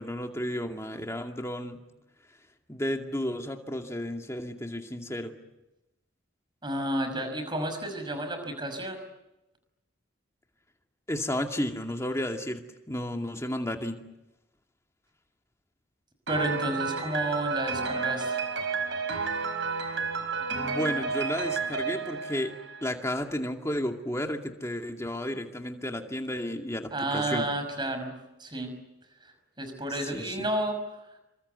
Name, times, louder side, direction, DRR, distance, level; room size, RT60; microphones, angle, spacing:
voice 1, 0.0-1.8 2.7-5.3 11.1-14.0 20.4-27.5 29.9-30.5, left 1 dB, 15° left, 3 dB, 2.3 m, -33 dB
voice 2, 6.6-9.0 16.3-18.4 26.9-28.1 28.4-28.8 29.6-30.8, right 1 dB, 20° right, 7 dB, 5.8 m, -31 dB
Piano, 16.3-23.1, right 5 dB, 65° right, 4.7 m, -31 dB
28.5 x 24.5 x 8.2 m, 0.95 s
head